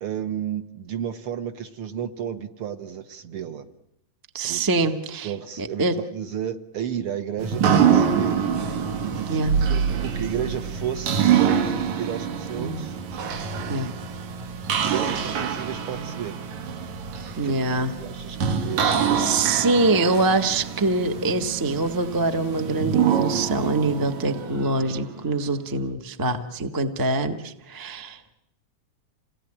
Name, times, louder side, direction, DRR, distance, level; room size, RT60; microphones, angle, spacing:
voice 1, 0.0-3.7 4.4-4.9 5.2-11.2 12.0-13.0 13.8-13.9 14.7-16.4 17.4-17.5 17.8-19.8, right 9 dB, 60° right, 8 dB, 1.7 m, -33 dB
voice 2, 4.3-5.3 5.6-5.9 9.3-9.5 12.6-12.8 13.7-13.9 17.4-17.9 19.2-28.2, right 2 dB, 25° right, 6 dB, 0.5 m, -24 dB
sound 1, 7.4-25.2, right 7 dB, 75° right, 3.0 m, -25 dB
28.5 x 18.5 x 9.9 m, 0.83 s
omnidirectional pair, 3.3 m